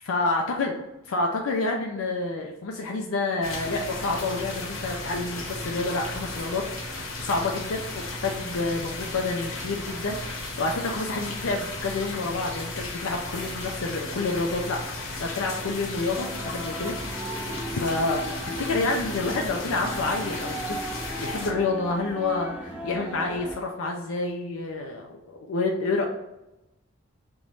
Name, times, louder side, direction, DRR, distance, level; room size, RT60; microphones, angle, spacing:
voice 1, 0.0-0.8 1.1-17.3 17.7-20.9 21.2-26.0, left 3 dB, 90° left, 1 dB, 0.5 m, -29 dB
sound 1, 3.4-21.5, left 2 dB, 70° left, 1.1 m, -35 dB
sound 2, 16.1-23.5, right 1 dB, 5° right, 0.5 m, -36 dB
3.5 x 3.0 x 3.9 m, 0.94 s
head